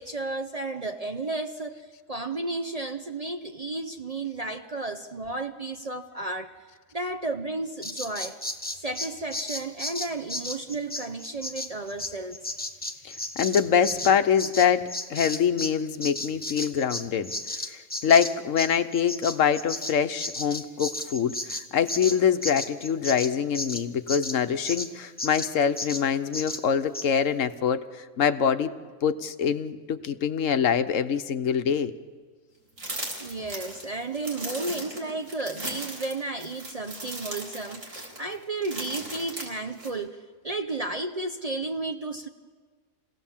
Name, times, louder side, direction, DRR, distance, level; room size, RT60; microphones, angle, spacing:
voice 1, 0.0-6.5 6.9-8.4 8.8-12.5 33.2-42.3, right 2 dB, 35° right, 6 dB, 0.7 m, -33 dB
Bird vocalization bird call bird song, 7.8-15.7 16.0-24.9 25.2-25.5 25.8-26.0 26.3-26.6 26.9-27.1, left 1 dB, 10° left, 1.0 m, -34 dB
voice 2, 13.0-17.3 17.7-28.7 29.0-31.9, left 7 dB, 70° left, 10 dB, 1.2 m, -24 dB
sound 1, 32.8-39.9, right 1 dB, 70° right, 4.2 m, -37 dB
28.0 x 17.5 x 7.3 m, 1.5 s
omnidirectional pair, 1.4 m